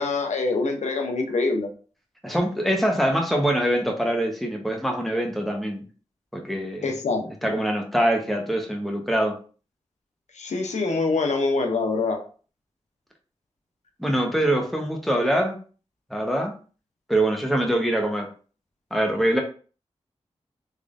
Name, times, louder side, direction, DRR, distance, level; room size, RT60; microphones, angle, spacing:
voice 1, 0.0-1.7 6.8-7.5 10.3-12.2, left 3 dB, 90° left, 4 dB, 0.6 m, -25 dB
voice 2, 2.2-5.9 6.3-7.0 7.4-9.4 14.0-15.6 16.1-16.5 17.1-18.3 18.9-19.4, right 1 dB, ahead, 1 dB, 1.0 m, -24 dB
3.5 x 3.3 x 2.5 m, 0.38 s
cardioid pair, 50°, 12 cm